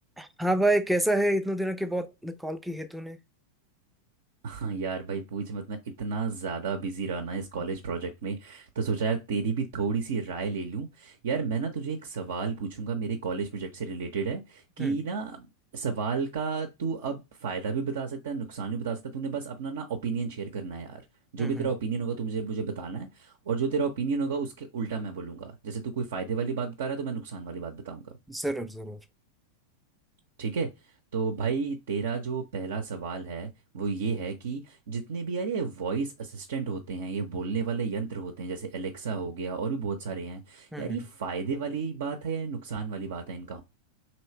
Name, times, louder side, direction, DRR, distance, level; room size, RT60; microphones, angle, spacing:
voice 1, 0.2-3.2 14.8-15.0 21.4-21.7 28.3-29.0 40.7-41.0, right 1 dB, 5° right, 0.5 m, -28 dB
voice 2, 4.4-15.5 15.7-21.0 21.3-28.1 30.4-30.7 31.1-43.6, right 5 dB, 60° right, 0.6 m, -32 dB
3.1 x 2.9 x 4.3 m
figure-of-eight pair, 90°, 0 cm